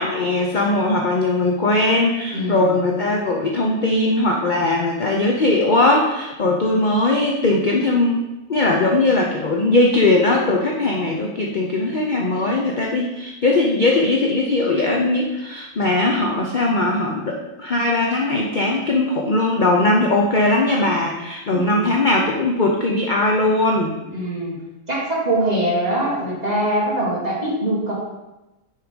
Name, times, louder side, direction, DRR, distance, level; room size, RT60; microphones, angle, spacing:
voice 1, 0.0-8.2 8.5-24.0, left 2 dB, 40° left, 0 dB, 0.7 m, -19 dB
voice 2, 2.3-2.7 21.5-21.9 24.1-24.5 24.9-27.9, right 1 dB, 25° right, -6 dB, 2.2 m, -22 dB
6.5 x 4.8 x 5.1 m, 1.0 s
omnidirectional pair, 1.6 m